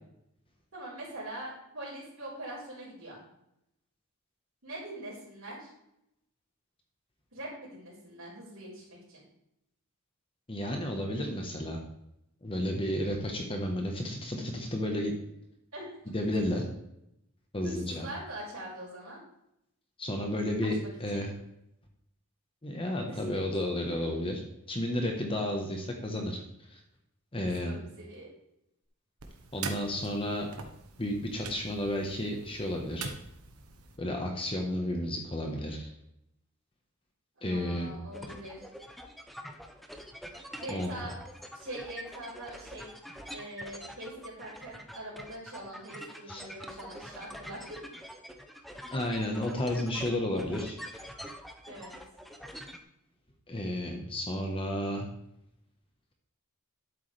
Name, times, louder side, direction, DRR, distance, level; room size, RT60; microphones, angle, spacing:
voice 1, 0.7-3.2 4.6-5.7 7.3-9.2 15.7-16.0 17.6-19.2 20.6-21.3 23.0-23.5 27.4-28.3 37.4-38.7 40.6-41.2 41.5-42.9 43.3-47.8 51.6-51.9, right 1 dB, 65° right, -10 dB, 4.4 m, -43 dB
voice 2, 10.5-11.8 12.4-15.1 16.1-16.6 17.5-18.1 20.0-21.3 22.6-24.4 24.7-26.4 26.7-26.8 27.3-27.8 29.5-30.5 31.0-33.1 34.0-35.9 37.4-37.9 40.7-41.1 46.3-46.4 48.9-50.8 53.5-55.1, left 1 dB, 25° left, 2 dB, 1.2 m, -32 dB
sound 1, 29.2-34.0, right 4 dB, 80° right, 1.2 m, -43 dB
sound 2, 38.1-52.8, equal, ahead, 0.7 m, -45 dB
11.5 x 8.4 x 3.4 m, 0.81 s
head